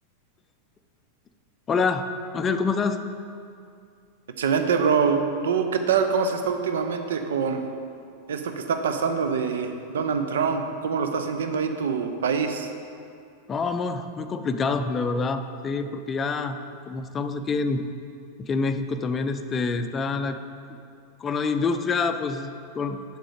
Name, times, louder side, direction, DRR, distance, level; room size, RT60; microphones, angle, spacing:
voice 1, 1.7-2.1 2.3-3.1 13.5-16.6 16.9-17.8 18.4-20.4 21.2-23.0, left 4 dB, 20° left, 9 dB, 0.5 m, -26 dB
voice 2, 4.4-7.6 8.3-12.7, right 6 dB, 60° right, 6 dB, 0.6 m, -25 dB
7.6 x 6.8 x 5.0 m, 2.4 s
figure-of-eight pair, 90°, 0 cm